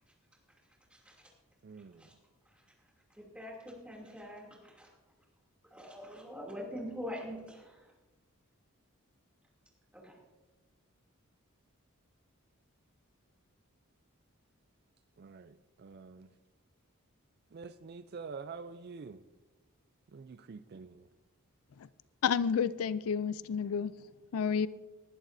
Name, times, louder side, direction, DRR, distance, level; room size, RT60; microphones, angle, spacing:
voice 1, 0.9-1.3 2.0-2.1 2.5-2.6 3.1-4.9 5.7-7.9 9.9-10.2, equal, 5° right, -2 dB, 2.7 m, -44 dB
voice 2, 1.6-2.1 15.2-16.3 17.5-19.2 20.1-21.1, right 5 dB, 50° right, 12 dB, 0.4 m, -47 dB
voice 3, 22.2-23.9 24.3-24.7, left 7 dB, 80° left, 17 dB, 0.4 m, -30 dB
19.5 x 11.5 x 2.6 m, 1.2 s
head